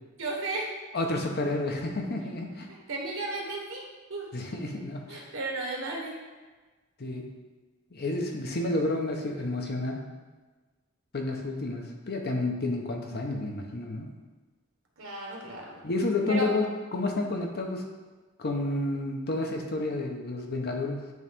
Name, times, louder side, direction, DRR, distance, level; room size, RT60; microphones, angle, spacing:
voice 1, 0.2-0.8 2.2-2.3 2.7-3.8 4.1-4.3 5.1-6.2 15.0-15.8 16.3-16.5, right 2 dB, 75° right, -1 dB, 1.3 m, -34 dB
voice 2, 0.9-2.7 4.3-5.3 7.0-7.3 7.9-10.1 11.1-14.1 15.8-17.8 18.4-21.1, left 2 dB, 50° left, 2 dB, 0.8 m, -30 dB
9.3 x 3.1 x 3.6 m, 1.3 s
head